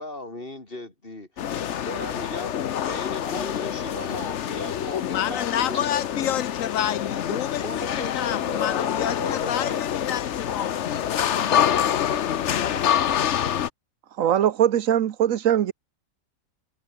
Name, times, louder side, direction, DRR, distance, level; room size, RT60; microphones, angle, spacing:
voice 1, 0.0-1.4 1.8-2.6 2.9-5.9 7.3-9.8 11.4-11.6 12.1-13.1, left 2 dB, 45° left, 4.7 m, -37 dB
sound 1, 1.4-13.7, left 9 dB, 65° left, 1.1 m, -26 dB
voice 2, 4.9-11.3, left 11 dB, 85° left, 1.1 m, -29 dB
voice 3, 14.2-15.7, right 10 dB, 85° right, 1.3 m, -21 dB
omnidirectional pair, 1.4 m